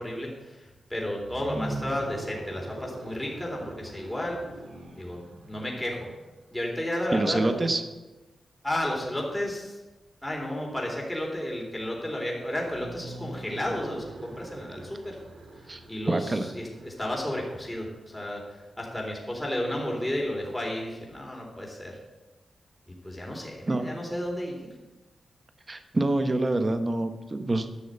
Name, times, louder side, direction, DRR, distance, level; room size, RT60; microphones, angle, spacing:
voice 1, 0.0-4.4 5.0-5.2 5.5-6.1 6.5-7.7 8.6-9.8 10.2-15.2 15.9-22.0 23.0-24.7, left 1 dB, 10° left, -1 dB, 3.6 m, -32 dB
sound 1, 1.2-6.4 12.6-18.3, right 1 dB, 85° right, 2.3 m, -42 dB
voice 2, 7.1-7.8 15.7-15.8 16.1-16.4 23.7-23.8 25.7-27.7, right 2 dB, 35° right, 8 dB, 1.2 m, -26 dB
11.0 x 6.4 x 8.1 m, 1.1 s
cardioid pair, 70°, 0 cm